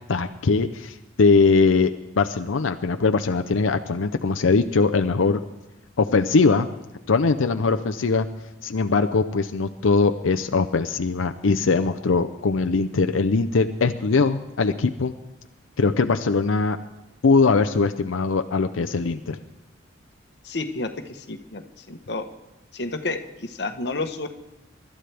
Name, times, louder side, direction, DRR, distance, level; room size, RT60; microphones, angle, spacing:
voice 1, 0.1-5.4 6.0-6.7 7.1-8.3 8.6-15.1 15.8-16.8 17.2-19.4, left 4 dB, 90° left, 7 dB, 0.6 m, -21 dB
voice 2, 20.4-22.2 22.7-24.3, left 2 dB, 55° left, 7 dB, 1.1 m, -31 dB
24.5 x 12.5 x 3.4 m, 1.0 s
head